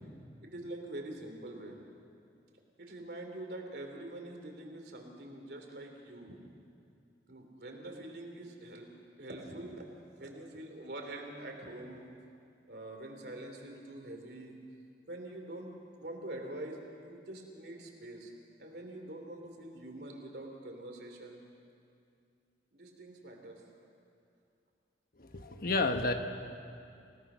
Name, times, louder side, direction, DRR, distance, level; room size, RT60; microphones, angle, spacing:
voice 1, 0.4-1.8 2.8-6.4 7.3-8.9 9.2-9.9 10.2-12.1 12.7-14.6 15.1-18.3 18.6-21.4 22.7-23.9, right 1 dB, 65° right, 3 dB, 3.3 m, -45 dB
voice 2, 25.2-26.1, left 3 dB, 55° left, 6 dB, 1.3 m, -30 dB
29.0 x 17.5 x 6.3 m, 2.4 s
head